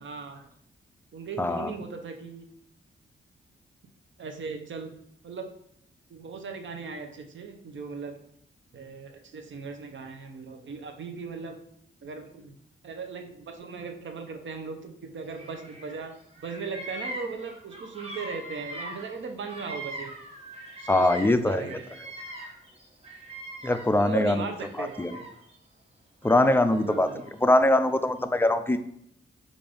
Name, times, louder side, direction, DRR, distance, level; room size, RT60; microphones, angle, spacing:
voice 1, 0.0-0.5 1.1-2.5 4.2-5.0 5.2-5.5 6.1-8.2 8.7-11.6 12.0-12.6 12.8-16.1 16.4-20.1 20.8-21.9 23.9-25.3 26.8-27.2, right 5 dB, 65° right, 6 dB, 0.7 m, -38 dB
voice 2, 1.4-1.7 20.9-21.7 23.6-24.4 24.8-25.1 26.2-27.1 27.4-28.8, left 1 dB, 10° left, 9 dB, 0.3 m, -22 dB
Bird vocalization bird call bird song, 15.3-16.0 16.3-21.4 21.7-24.1 24.5-25.5 26.2-27.3, right 1 dB, 30° right, 1.1 m, -41 dB
5.1 x 2.6 x 3.4 m, 0.70 s
cardioid pair, 75°, 21 cm